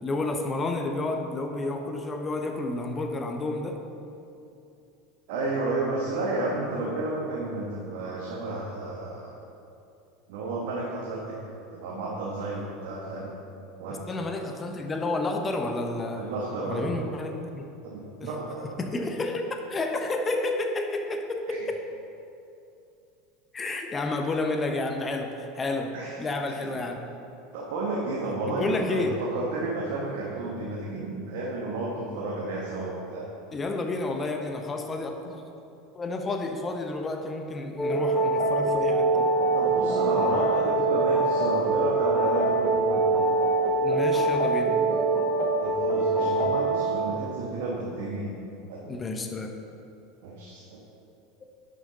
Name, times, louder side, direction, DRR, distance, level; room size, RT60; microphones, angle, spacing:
voice 1, 0.0-3.8 14.1-16.3 16.6-17.7 18.2-18.3 18.8-21.8 23.5-27.0 28.5-29.2 33.5-35.4 35.9-39.3 43.8-44.8 48.9-49.5, left 2 dB, 20° left, 4 dB, 1.0 m, -30 dB
voice 2, 5.3-9.3 10.3-11.4 11.7-13.3 13.8-14.1 14.4-14.5 16.1-16.8 17.8-18.7 21.5-21.6 25.9-26.1 27.5-33.3 39.5-43.2 45.6-48.3 48.7-48.9 50.2-50.8, right 2 dB, 55° right, -4 dB, 1.6 m, -31 dB
sound 1, 37.8-47.0, right 2 dB, 5° left, 1.3 m, -24 dB
11.5 x 8.1 x 3.9 m, 2.7 s
figure-of-eight pair, 75°, 0 cm